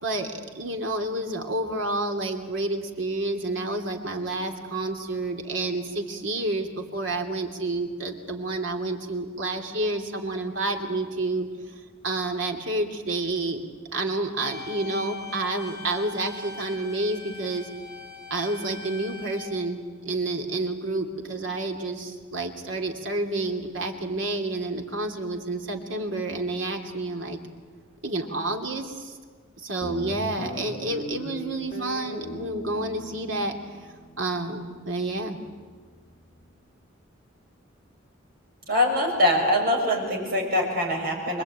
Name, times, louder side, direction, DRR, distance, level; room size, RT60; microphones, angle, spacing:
voice 1, 0.0-11.5 12.0-13.6 13.9-17.7 18.3-27.4 28.0-29.1 29.6-33.5 33.8-35.4, right 2 dB, 80° right, 3 dB, 2.9 m, -29 dB
sound 1, 14.4-19.4, left 3 dB, 20° left, 7.7 m, -41 dB
Guitar, 29.8-36.5, equal, 35° left, 5.8 m, -40 dB
voice 2, 38.7-41.4, left 1 dB, 50° right, 0 dB, 6.4 m, -23 dB
26.0 x 22.5 x 8.9 m, 1.5 s
head